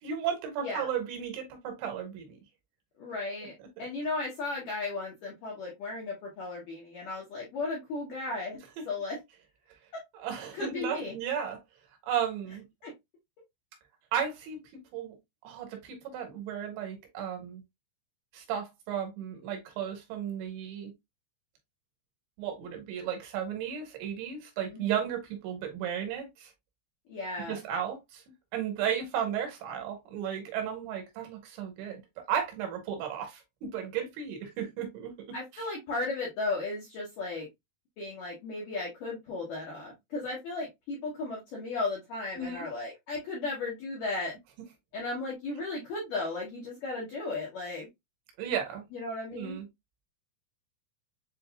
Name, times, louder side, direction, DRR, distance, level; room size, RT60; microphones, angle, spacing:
voice 1, 0.0-2.4 3.8-3.9 8.8-8.9 10.1-11.6 12.1-12.6 14.1-14.6 14.9-15.1 15.4-17.6 18.3-20.9 22.4-26.5 27.5-28.2 28.5-32.0 32.3-35.1 42.4-42.7 48.4-48.9 49.3-49.6, right 8 dB, 75° right, 3.1 m, -34 dB
voice 2, 3.0-8.6 8.9-9.2 10.5-11.1 12.8-12.9 24.7-24.9 27.1-27.6 35.3-37.5 38.0-44.3 44.9-47.9 48.9-49.6, left 3 dB, 70° left, 2.0 m, -35 dB
7.4 x 2.6 x 2.2 m
omnidirectional pair, 5.6 m